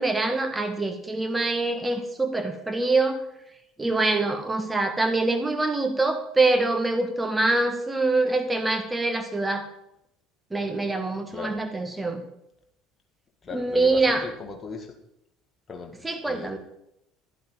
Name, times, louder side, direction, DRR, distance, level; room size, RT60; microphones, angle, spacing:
voice 1, 0.0-3.2 3.8-9.6 10.5-12.2 13.5-14.2 16.0-16.6, right 2 dB, 15° right, 6 dB, 1.6 m, -24 dB
voice 2, 13.4-14.9 15.7-15.9 16.2-16.6, left 4 dB, 30° left, 2 dB, 2.0 m, -38 dB
11.5 x 8.5 x 3.9 m, 0.81 s
figure-of-eight pair, 65°, 0 cm